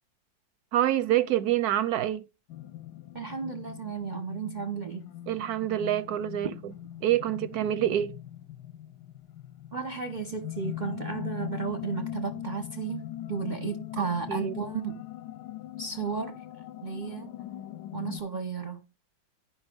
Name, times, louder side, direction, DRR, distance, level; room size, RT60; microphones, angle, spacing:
voice 1, 0.7-2.3 5.3-6.5 7.0-8.1 14.0-14.5, right 12 dB, 65° right, 1.0 m, -26 dB
sound 1, 2.5-18.2, left 13 dB, 70° left, 1.1 m, -41 dB
voice 2, 3.1-5.0 9.7-15.0 15.8-16.4 16.8-17.3 17.9-18.8, right 5 dB, 40° right, 0.7 m, -34 dB
9.7 x 5.5 x 5.2 m
omnidirectional pair, 2.1 m